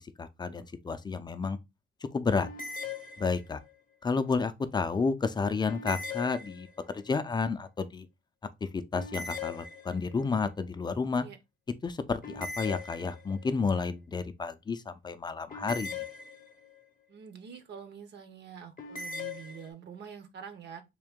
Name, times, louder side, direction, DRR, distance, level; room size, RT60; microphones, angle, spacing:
voice 1, 0.0-1.6 2.1-2.5 3.2-3.6 4.0-6.7 6.9-8.1 8.7-11.2 11.8-16.0, left 4 dB, 20° left, 0.4 m, -31 dB
sound 1, 2.4-3.7 5.7-7.0 8.9-10.2 12.2-13.5 15.5-16.8 18.8-19.7, left 4 dB, 40° left, 0.8 m, -40 dB
voice 2, 17.1-20.8, right 7 dB, 60° right, 0.8 m, -46 dB
3.7 x 2.6 x 3.5 m
cardioid pair, 120°, 21 cm